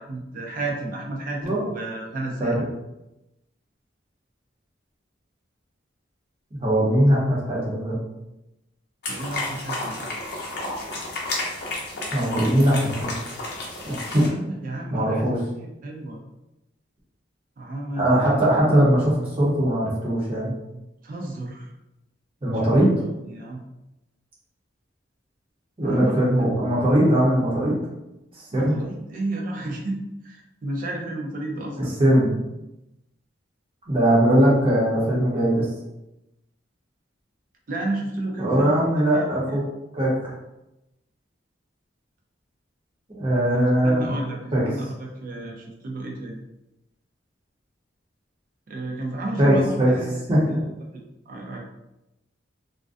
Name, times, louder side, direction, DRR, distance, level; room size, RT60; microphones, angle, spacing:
voice 1, 0.0-2.6 9.1-10.1 14.2-15.3 15.6-16.2 17.6-18.3 21.0-21.7 22.6-23.6 25.8-26.5 28.5-32.0 37.7-39.6 43.5-44.4 44.6-46.4 48.7-50.1 50.5-50.6 51.3-51.6, right 2 dB, 45° right, 0 dB, 0.4 m, -32 dB
voice 2, 6.5-8.0 12.1-13.1 13.8-14.3 14.9-15.4 18.0-20.5 22.4-23.0 25.8-27.8 28.5-28.8 32.0-32.3 33.9-35.7 38.4-39.6 39.9-40.3 43.2-44.0 44.5-44.6 49.4-49.9 50.3-50.6, right 1 dB, 30° right, -6 dB, 0.7 m, -20 dB
sound 1, 9.0-14.3, left 2 dB, 55° left, 0.6 m, -31 dB
2.4 x 2.1 x 2.4 m, 0.93 s
head